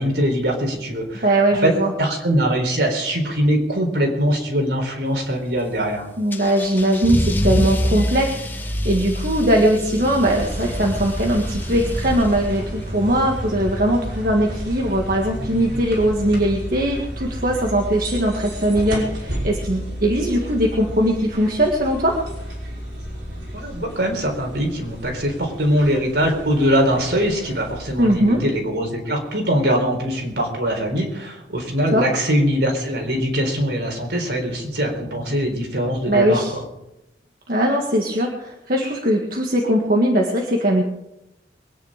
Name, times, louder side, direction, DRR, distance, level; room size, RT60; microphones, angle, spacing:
voice 1, 0.0-1.3 1.6-6.1 23.5-36.6, equal, 70° right, 2 dB, 4.1 m, -22 dB
voice 2, 1.2-1.9 6.2-22.2 28.0-28.4 31.9-32.0 36.1-36.5 37.5-40.8, right 1 dB, 50° right, 0 dB, 1.8 m, -20 dB
Car / Engine starting / Accelerating revving vroom, 6.3-12.8, equal, 10° left, 1.2 m, -26 dB
sound 1, 10.0-28.5, right 1 dB, 85° right, 5.9 m, -32 dB
22.5 x 10.0 x 5.1 m, 0.89 s
head